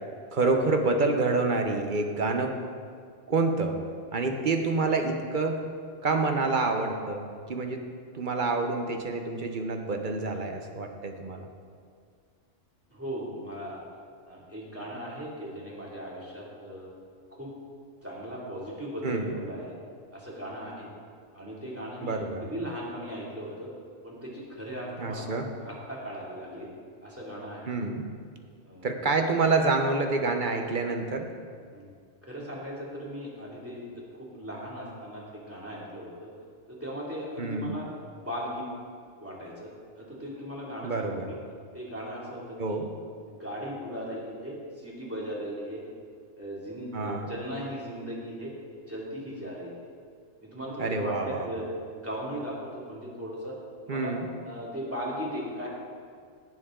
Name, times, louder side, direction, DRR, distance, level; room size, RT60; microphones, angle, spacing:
voice 1, 0.3-2.6 3.3-3.8 4.1-5.7 6.0-7.8 8.1-11.5 19.0-19.3 22.0-22.5 25.0-25.5 27.7-28.1 28.8-31.3 37.4-37.8 40.8-41.3 42.6-42.9 46.9-47.3 50.8-51.5 53.9-54.3, right 3 dB, 45° right, 4 dB, 1.0 m, -27 dB
voice 2, 12.9-13.8 14.3-16.9 17.4-17.5 18.0-19.8 20.1-20.9 21.3-23.7 24.0-25.3 25.6-26.7 27.0-27.7 28.6-28.9 31.7-31.9 32.2-36.3 36.7-37.9 38.2-38.6 39.2-39.7 40.0-41.4 41.7-42.8 43.3-45.8 46.4-48.5 48.9-49.7 50.4-51.6 52.0-53.5 53.8-54.1 54.4-55.7, equal, 10° right, -5 dB, 2.5 m, -38 dB
17.0 x 7.6 x 3.7 m, 2.1 s
omnidirectional pair, 1.3 m